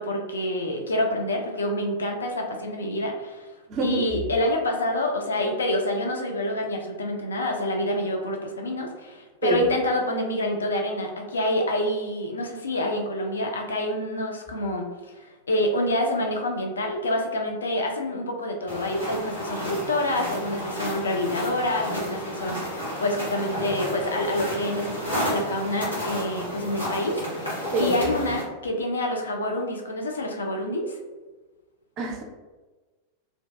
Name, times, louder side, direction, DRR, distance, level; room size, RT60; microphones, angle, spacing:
voice 1, 0.0-3.5 3.8-31.0, left 1 dB, 70° left, 2 dB, 0.4 m, -27 dB
voice 2, 3.7-4.1 9.4-9.7 27.7-28.0 32.0-32.2, right 2 dB, 35° right, 2 dB, 0.4 m, -25 dB
sound 1, 18.7-28.4, equal, 90° left, 1.1 m, -32 dB
2.6 x 2.2 x 2.2 m, 1.2 s
figure-of-eight pair, 90°, 0 cm